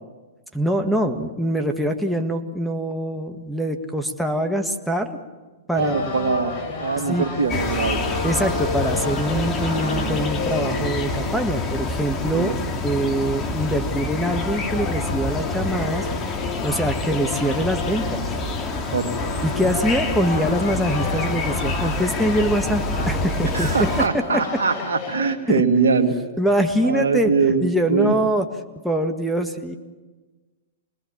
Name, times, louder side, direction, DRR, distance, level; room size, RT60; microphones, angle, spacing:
voice 1, 0.5-5.2 5.7-6.0 7.1-7.3 8.2-12.5 12.8-16.1 16.6-18.2 19.4-23.9 24.1-24.4 25.5-25.6 26.4-27.3 27.6-28.5 28.8-29.8, equal, ahead, 5 dB, 1.9 m, -23 dB
voice 2, 5.7-8.0 12.3-12.6 18.9-19.1 23.5-26.2 26.8-28.2, right 5 dB, 80° right, 6 dB, 2.3 m, -22 dB
sound 1, 5.8-25.4, left 4 dB, 45° left, 4.3 m, -33 dB
sound 2, 7.2-21.3, left 1 dB, 85° left, 5.3 m, -36 dB
sound 3, 7.5-24.1, left 2 dB, 25° left, 2.5 m, -27 dB
26.5 x 20.5 x 7.4 m, 1.3 s
hypercardioid pair, 115°, 0 cm